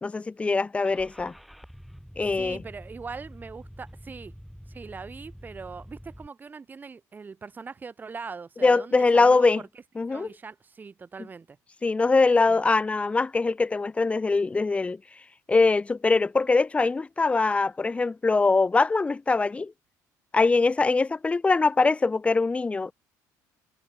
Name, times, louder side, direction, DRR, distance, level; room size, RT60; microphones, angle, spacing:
voice 1, 0.0-1.3 2.2-2.6 8.6-9.6 10.0-10.3 11.8-15.0 15.5-19.7 20.3-22.9, left 3 dB, 15° left, 0.8 m, -22 dB
Car / Engine starting, 0.8-6.3, equal, ahead, 2.2 m, -46 dB
voice 2, 2.2-4.3 4.7-9.7 10.1-11.6 12.5-12.6, right 5 dB, 25° right, 4.2 m, -41 dB
cardioid pair, 120°, 7 cm